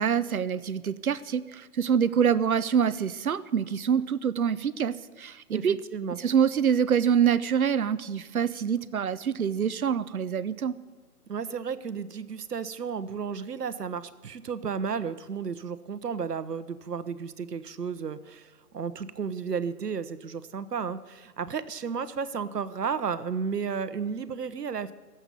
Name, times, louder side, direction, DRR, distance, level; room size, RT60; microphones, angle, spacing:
voice 1, 0.0-5.8 6.2-10.7, right 7 dB, 65° right, 15 dB, 0.9 m, -25 dB
voice 2, 5.5-6.2 11.3-24.9, right 6 dB, 90° right, 13 dB, 1.2 m, -33 dB
16.0 x 8.1 x 9.4 m, 1.3 s
hypercardioid pair, 170°, 46 cm